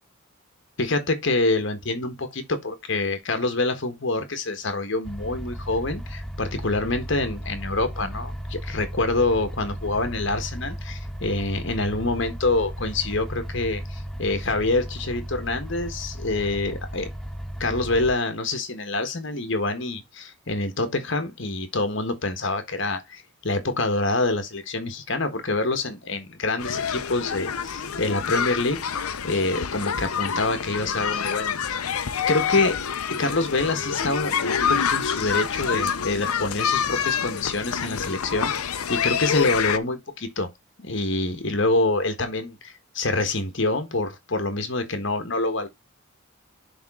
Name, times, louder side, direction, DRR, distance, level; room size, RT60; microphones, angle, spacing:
voice 1, 0.8-17.1 17.6-31.8 32.3-32.8 33.2-38.6 38.9-40.5 40.8-45.7, left 2 dB, 55° left, 1.4 m, -26 dB
sound 1, 5.0-18.1, equal, ahead, 0.5 m, -35 dB
sound 2, 26.6-39.8, left 7 dB, 85° left, 0.7 m, -27 dB
10.5 x 3.7 x 3.6 m
head